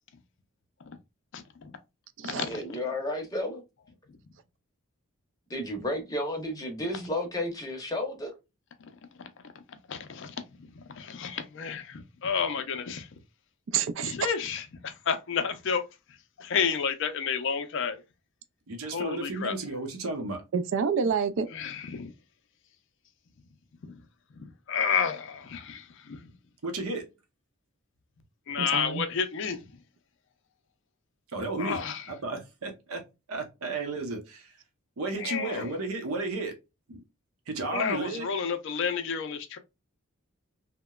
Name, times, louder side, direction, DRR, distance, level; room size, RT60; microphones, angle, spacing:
voice 1, 1.3-1.7 2.3-2.6 4.1-4.2 8.8-8.9 9.2-9.3 9.9-13.1 14.0-15.8 16.4-18.0 18.9-19.5 21.5-22.1 23.8-24.0 24.3-26.3 28.5-29.7 31.6-32.0 35.2-35.7 37.7-39.6, left 6 dB, 60° left, 0.4 m, -31 dB
voice 2, 2.4-3.6 5.5-8.4, left 1 dB, 15° left, 0.7 m, -32 dB
voice 3, 13.7-14.1 20.5-21.5 28.6-29.0, right 6 dB, 60° right, 0.3 m, -28 dB
voice 4, 18.7-20.4 26.6-27.0 31.3-31.8 32.1-33.0 33.3-34.6 35.0-36.5 36.9-37.0 37.5-38.3, right 2 dB, 85° right, 0.7 m, -33 dB
2.9 x 2.1 x 2.2 m
head